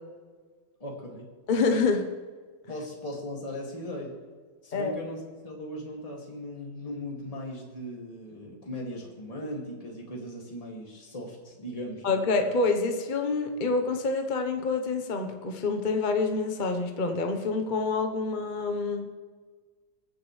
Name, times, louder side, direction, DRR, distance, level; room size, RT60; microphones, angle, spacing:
voice 1, 0.8-1.3 2.7-4.1 4.6-5.2 5.4-12.0, left 1 dB, 15° left, -2 dB, 2.4 m, -38 dB
voice 2, 1.5-2.0 4.7-4.9 12.0-19.1, left 4 dB, 35° left, 5 dB, 0.9 m, -27 dB
22.0 x 9.9 x 3.3 m, 1.5 s
omnidirectional pair, 2.2 m